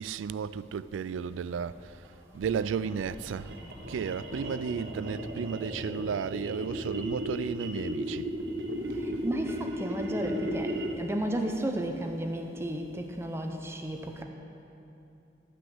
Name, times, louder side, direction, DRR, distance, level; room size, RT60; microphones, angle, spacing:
voice 1, 0.0-2.1 2.3-3.6 3.9-8.3, right 6 dB, 85° right, 0.3 m, -33 dB
sound 1, 1.1-5.7, equal, 25° left, 2.1 m, -52 dB
sound 2, 2.5-11.2, equal, 65° right, 1.2 m, -35 dB
voice 2, 9.0-14.2, right 1 dB, 15° right, 0.6 m, -33 dB
12.0 x 6.0 x 7.7 m
head